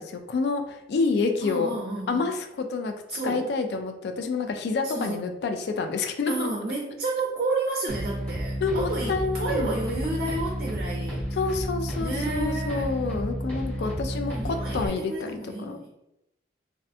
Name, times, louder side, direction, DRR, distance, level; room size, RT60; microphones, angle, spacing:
voice 1, 0.0-1.8 2.1-2.9 3.2-6.5 8.6-9.7 11.4-15.8, left 4 dB, 65° left, 6 dB, 0.3 m, -28 dB
voice 2, 1.4-2.3 3.1-3.5 4.8-5.2 6.3-11.2 12.0-12.9 13.8-15.9, right 2 dB, 55° right, -2 dB, 0.4 m, -31 dB
sound 1, 7.9-14.9, equal, 10° left, 0.7 m, -31 dB
2.5 x 2.1 x 2.6 m, 0.86 s
head